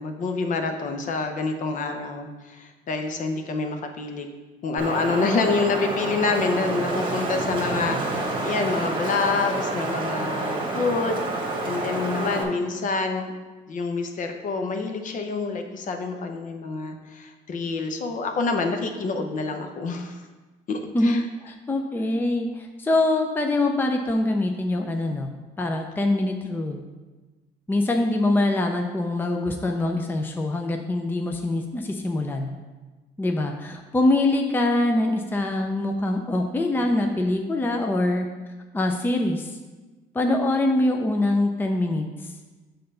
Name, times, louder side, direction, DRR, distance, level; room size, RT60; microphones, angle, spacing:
voice 1, 0.0-4.3 4.6-13.3 13.7-20.2 20.7-21.2, left 4 dB, 50° left, 5 dB, 0.8 m, -27 dB
Wind, 4.8-12.4, right 2 dB, 30° right, 1.3 m, -28 dB
voice 2, 20.9-25.3 25.6-26.8 27.7-32.5 33.2-38.3 38.7-39.6 40.1-42.3, left 2 dB, 10° left, 4 dB, 0.5 m, -24 dB
6.6 x 3.8 x 5.4 m, 1.2 s
cardioid pair, 110°, 17 cm